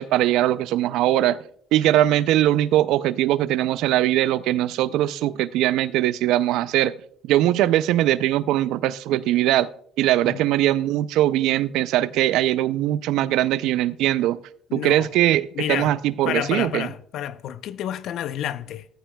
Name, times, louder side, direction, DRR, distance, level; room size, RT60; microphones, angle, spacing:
voice 1, 0.0-1.4 1.7-6.9 7.3-9.7 10.0-14.4 14.7-16.9, right 13 dB, 80° right, 0.4 m, -21 dB
voice 2, 14.7-15.1 15.5-15.9 16.2-18.9, left 11 dB, 70° left, 0.6 m, -29 dB
15.0 x 14.0 x 2.2 m
supercardioid pair, 75°, 0 cm